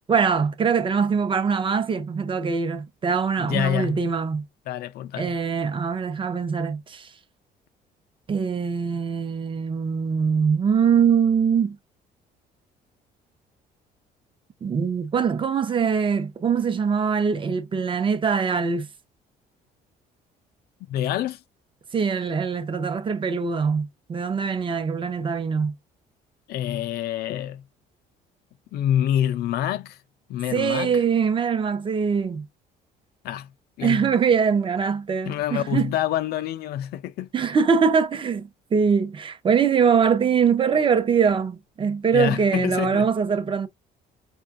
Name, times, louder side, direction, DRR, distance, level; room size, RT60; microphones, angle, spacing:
voice 1, 0.1-4.4 5.2-7.1 8.3-11.8 14.6-18.9 21.9-25.7 30.5-32.5 33.8-35.9 37.3-43.7, right 6 dB, 30° right, 0.7 m, -23 dB
voice 2, 3.4-4.0 4.7-5.4 20.9-21.4 26.5-27.6 28.7-30.0 30.3-31.0 33.2-33.5 33.8-34.1 35.3-37.3 42.1-43.1, left 11 dB, 70° left, 0.5 m, -26 dB
4.6 x 2.3 x 2.4 m
cardioid pair, 110°, 17 cm